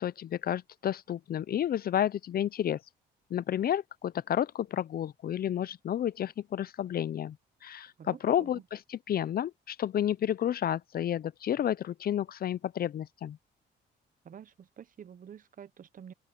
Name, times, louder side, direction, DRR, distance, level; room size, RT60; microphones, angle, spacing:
voice 1, 0.0-2.8 3.3-7.4 7.6-13.4, left 10 dB, 50° left, 0.5 m, -31 dB
voice 2, 8.0-8.5 14.2-16.1, right 8 dB, 45° right, 0.8 m, -48 dB
open air
cardioid pair, 90°, 20 cm